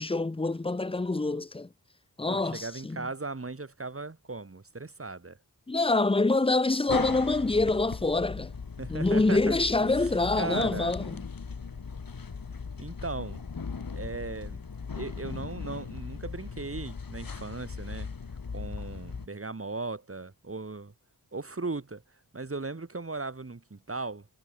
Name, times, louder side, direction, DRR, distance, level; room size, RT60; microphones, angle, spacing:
voice 1, 0.0-1.7 2.2-3.1 5.7-8.5 8.9-11.2, left 2 dB, 15° left, 0.7 m, -26 dB
voice 2, 2.3-5.4 8.8-9.6 10.0-10.1 10.4-10.9 12.8-13.4 13.9-14.6 15.0-18.1 18.5-20.9 21.3-22.0 22.3-24.3, right 3 dB, 35° right, 2.9 m, -37 dB
sound 1, 6.9-19.3, left 5 dB, 65° left, 2.5 m, -38 dB
wide cardioid pair, 55°, 38 cm